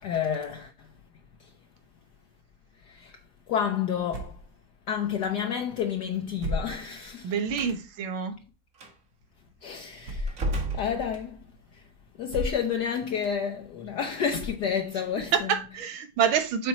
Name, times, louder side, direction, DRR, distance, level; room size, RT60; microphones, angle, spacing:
voice 1, 0.0-0.7 2.9-3.1 3.5-4.4 4.9-7.3 9.6-10.4 10.7-11.4 12.2-15.5, left 8 dB, 65° left, 1.2 m, -30 dB
sound 1, 4.1-4.5 5.2-5.3 6.4-7.1 7.7-7.8 10.0-10.5 11.1-11.2 12.3-12.7 13.2-13.3 14.3-14.9, equal, 70° right, 2.0 m, -34 dB
voice 2, 7.2-8.3 15.3-16.7, right 7 dB, 90° right, 1.8 m, -27 dB
Slam, 7.5-7.8 8.7-8.9 10.3-11.6, right 1 dB, 45° right, 1.8 m, -32 dB
7.2 x 4.4 x 4.1 m
omnidirectional pair, 2.2 m